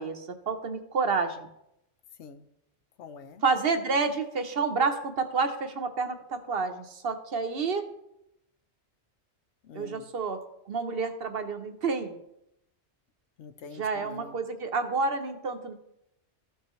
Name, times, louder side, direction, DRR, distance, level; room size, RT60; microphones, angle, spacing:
voice 1, 0.0-1.5 3.4-7.9 9.7-12.2 13.8-15.7, right 4 dB, 60° right, 7 dB, 1.0 m, -29 dB
voice 2, 2.2-2.5 3.0-3.4 9.6-10.1 13.4-14.4, left 5 dB, 75° left, 10 dB, 1.0 m, -46 dB
14.0 x 5.6 x 3.0 m, 0.82 s
omnidirectional pair, 1.2 m